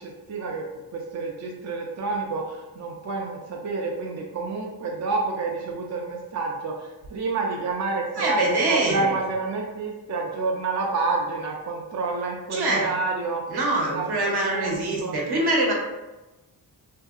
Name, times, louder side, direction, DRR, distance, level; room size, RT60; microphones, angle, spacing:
voice 1, 0.0-13.4 13.9-15.1, right 3 dB, 45° right, -1 dB, 0.4 m, -29 dB
voice 2, 8.2-9.2 12.5-12.9 13.5-15.7, right 2 dB, 70° right, -2 dB, 0.8 m, -24 dB
2.7 x 2.6 x 2.3 m, 1.1 s
wide cardioid pair, 85°, 40 cm